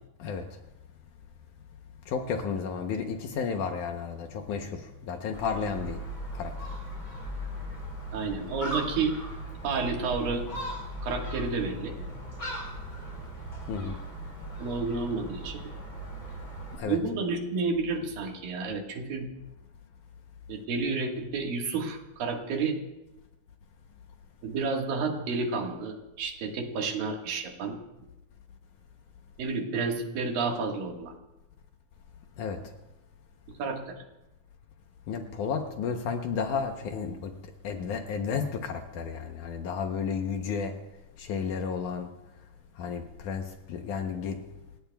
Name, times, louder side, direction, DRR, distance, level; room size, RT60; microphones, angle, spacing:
voice 1, 2.1-6.0 6.3-6.5 13.7-14.0 16.7-17.0 32.4-32.6 35.1-37.3 37.6-40.7 41.2-42.1 42.8-44.4, left 6 dB, 70° left, 5 dB, 2.1 m, -32 dB
Gull seagull, 5.3-16.8, equal, 25° left, 5.3 m, -38 dB
voice 2, 8.1-9.1 9.6-10.5 11.0-11.9 14.6-15.6 16.9-19.3 20.5-22.8 24.4-27.8 29.4-31.1 33.6-34.0, right 4 dB, 75° right, 2 dB, 3.3 m, -30 dB
29.0 x 16.0 x 2.3 m, 1.0 s
omnidirectional pair, 4.2 m